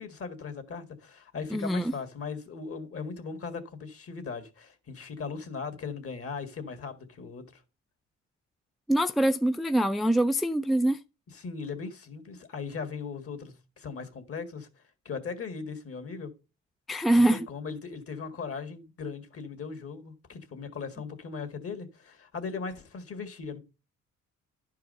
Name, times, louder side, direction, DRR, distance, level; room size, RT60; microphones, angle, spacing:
voice 1, 0.0-7.6 11.3-14.7 15.1-16.3 17.1-23.6, left 5 dB, 50° left, 2.0 m, -38 dB
voice 2, 1.5-1.9 8.9-11.0 16.9-17.4, right 1 dB, ahead, 0.4 m, -24 dB
11.0 x 4.7 x 5.3 m
cardioid pair, 90°, 30 cm